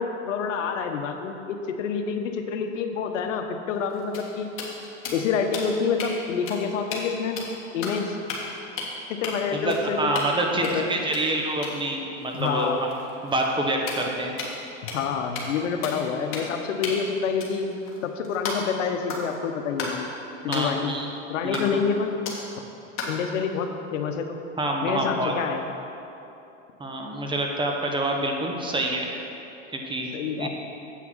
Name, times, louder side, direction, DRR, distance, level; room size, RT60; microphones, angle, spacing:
voice 1, 0.0-4.5 5.1-7.4 7.7-8.2 9.1-10.1 10.5-10.8 12.3-12.8 14.9-17.7 18.0-20.1 20.4-20.9 21.3-22.1 23.1-24.3 24.8-25.6 30.1-30.5, left 6 dB, 85° left, 5 dB, 0.9 m, -27 dB
sound 1, 3.7-6.1 6.5-6.6 6.9-7.1 7.4-8.0 8.3-8.5 8.8-8.9 9.2-9.3 9.7-10.4 10.6-14.6 14.9-15.1 15.3-15.6 15.8-16.0 16.3-16.6 16.8-18.8 19.1-19.4 19.8-20.0 20.5-20.6 21.5-21.9 22.2-22.5 23.0-23.2, left 3 dB, 35° left, 1.8 m, -35 dB
voice 2, 9.5-12.9 13.2-14.3 20.5-21.1 21.4-21.8 24.6-25.3 26.8-29.1 29.7-30.1 30.4-30.5, right 1 dB, 15° right, 1 dB, 0.9 m, -27 dB
8.2 x 5.9 x 6.1 m, 2.9 s
supercardioid pair, 120°, 37 cm